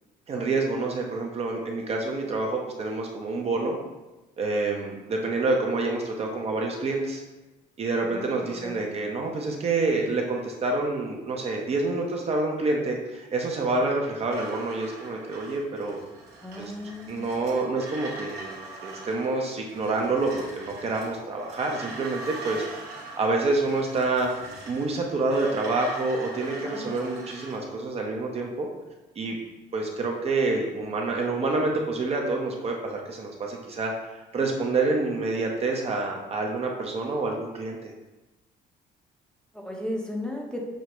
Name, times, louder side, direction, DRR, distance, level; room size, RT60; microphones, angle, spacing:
voice 1, 0.3-3.8 4.4-7.2 7.8-16.0 16.6-16.7 17.1-22.6 23.2-24.3 24.7-28.7 29.2-29.4 29.7-37.9, right 3 dB, 35° right, 1 dB, 0.6 m, -27 dB
sound 1, 14.3-27.6, right 2 dB, 75° right, 1.1 m, -42 dB
voice 2, 16.4-17.3 26.6-26.9 39.5-40.7, left 1 dB, 5° left, -1 dB, 0.6 m, -35 dB
6.1 x 2.1 x 2.9 m, 1.1 s
cardioid pair, 110°, 17 cm